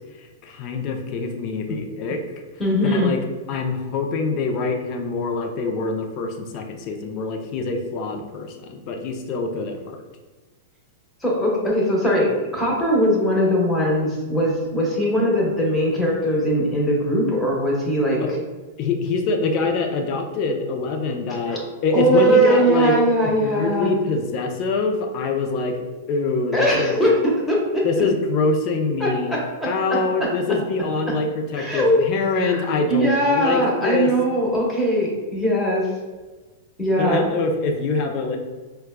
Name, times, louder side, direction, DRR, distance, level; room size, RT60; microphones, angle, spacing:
voice 1, 0.2-2.2 2.8-3.2 3.5-10.0 18.2-18.4 18.8-23.0 23.2-25.8 26.1-27.0 27.8-29.4 29.7-34.1 37.0-38.4, left 3 dB, 45° left, 4 dB, 0.5 m, -24 dB
voice 2, 2.6-3.1 11.2-18.2 21.5-21.6 21.9-23.9 26.5-27.8 29.0-30.3 31.5-32.0 32.4-35.9 36.8-37.3, equal, 10° left, -4 dB, 1.1 m, -20 dB
4.5 x 2.2 x 2.2 m, 1.3 s
hypercardioid pair, 110°, 0 cm